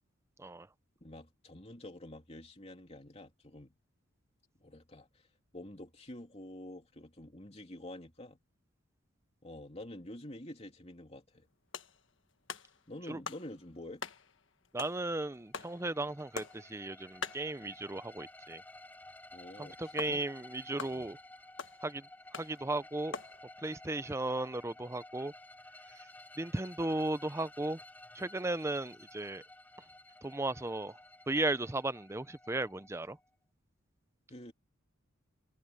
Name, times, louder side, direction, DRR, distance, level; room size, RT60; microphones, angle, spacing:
voice 1, 1.0-3.8 4.6-5.3 5.5-8.4 9.4-11.5 12.9-14.0 19.3-20.2 20.9-21.1 34.3-34.5, left 1 dB, 30° left, 3.1 m, -48 dB
sound 1, 11.5-18.5 18.8-18.9 19.2-19.3 20.0-23.4, left 5 dB, 60° left, 1.5 m, -46 dB
voice 2, 14.7-18.6 19.6-21.2 21.8-22.1 22.3-23.1 23.6-25.3 26.4-27.8 28.1-29.4 30.2-31.0 31.3-33.2, right 2 dB, 15° right, 0.6 m, -35 dB
sound 2, 15.4-33.2, left 1 dB, 10° left, 4.1 m, -54 dB
head